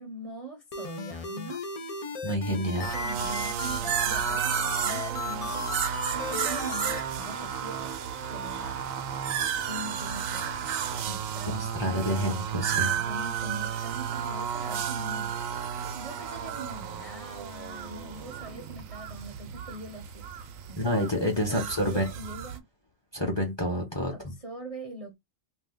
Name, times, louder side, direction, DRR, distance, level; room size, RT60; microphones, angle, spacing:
voice 1, 0.0-1.6 2.5-5.7 6.1-7.9 8.3-8.8 9.7-10.5 11.1-12.3 13.0-15.6 15.8-20.3 20.7-21.1 21.5-22.6 24.0-25.1, right 1 dB, 35° right, 0.6 m, -42 dB
sound 1, 0.7-7.0, left 5 dB, 75° left, 0.3 m, -36 dB
voice 2, 2.2-2.9 11.8-12.9 20.8-22.1 23.1-24.1, equal, 25° left, 0.7 m, -28 dB
sound 2, 2.8-22.6, right 8 dB, 85° right, 1.0 m, -32 dB
2.7 x 2.2 x 3.5 m
omnidirectional pair, 1.4 m